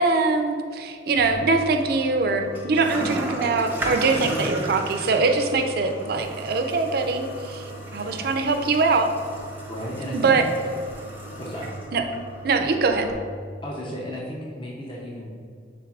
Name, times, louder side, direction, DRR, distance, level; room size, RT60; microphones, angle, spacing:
voice 1, 0.0-9.1 10.1-10.4 11.9-12.0 12.4-13.1, right 3 dB, 60° right, 5 dB, 0.4 m, -22 dB
Toilet flush, 1.2-13.1, right 1 dB, 10° right, 0.6 m, -35 dB
voice 2, 4.1-4.6 8.0-8.3 9.7-10.4 11.4-11.7 13.6-15.4, equal, 30° left, -4 dB, 0.6 m, -34 dB
5.9 x 3.8 x 2.4 m, 2.2 s
head